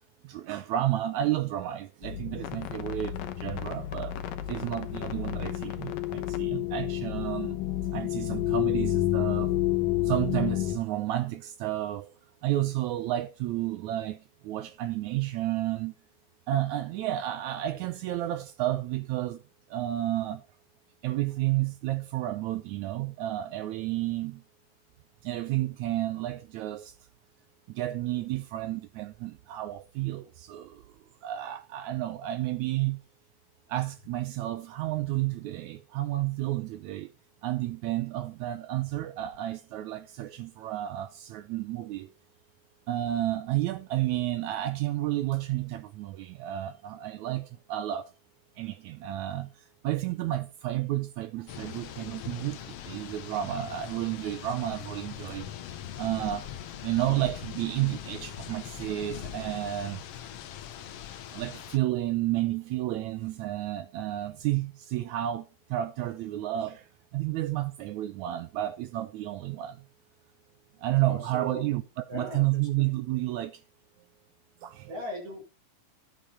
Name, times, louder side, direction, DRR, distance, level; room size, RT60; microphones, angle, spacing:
voice 1, 0.2-4.2 4.5-7.6 7.9-9.5 10.0-12.1 12.4-15.9 16.5-19.4 19.7-20.4 21.0-24.4 25.2-26.9 27.7-30.8 31.2-33.0 33.7-37.1 37.4-42.1 42.9-48.1 48.6-49.5 49.8-55.5 56.0-56.5 56.8-60.0 61.3-66.9 67.1-69.8 70.8-73.6 74.6-74.9, right 14 dB, 75° right, 1.8 m, -31 dB
sound 1, 2.0-10.8, left 14 dB, 90° left, 2.7 m, -30 dB
sound 2, 51.5-61.8, left 10 dB, 70° left, 1.5 m, -41 dB
voice 2, 71.1-71.6 72.1-72.5 72.8-72.9 74.9-75.4, equal, 55° right, 6.7 m, -37 dB
11.5 x 8.5 x 4.3 m
omnidirectional pair, 3.8 m